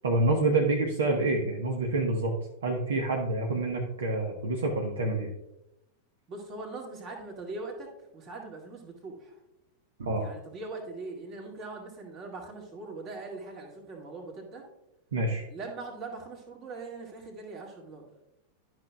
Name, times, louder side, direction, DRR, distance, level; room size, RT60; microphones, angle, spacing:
voice 1, 0.0-2.3 2.6-5.3 10.0-10.3 15.1-15.4, right 2 dB, 65° right, 1 dB, 0.9 m, -27 dB
voice 2, 6.3-9.4 10.1-14.7 15.5-18.0, right 3 dB, 35° right, 1 dB, 2.1 m, -41 dB
12.0 x 6.1 x 2.3 m, 0.89 s
figure-of-eight pair, 90°, 0 cm